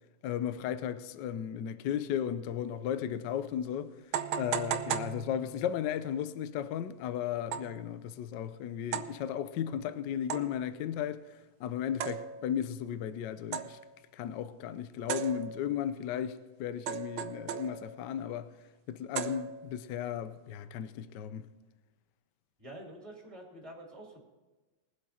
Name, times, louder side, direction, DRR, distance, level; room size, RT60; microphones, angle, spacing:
voice 1, 0.2-3.9 4.4-11.2 11.6-13.8 14.1-18.5 18.9-21.5, left 9 dB, 65° left, 1.2 m, -35 dB
sound 1, 3.1-3.2 4.1-5.8 7.5-7.8 8.9-9.2 10.3-10.7 12.0-12.6 13.5-13.9 15.1-15.8 16.9-18.0 19.1-19.8, right 9 dB, 75° right, 1.4 m, -37 dB
voice 2, 22.6-24.2, right 1 dB, 15° right, 2.8 m, -47 dB
21.0 x 8.0 x 4.3 m
omnidirectional pair, 2.3 m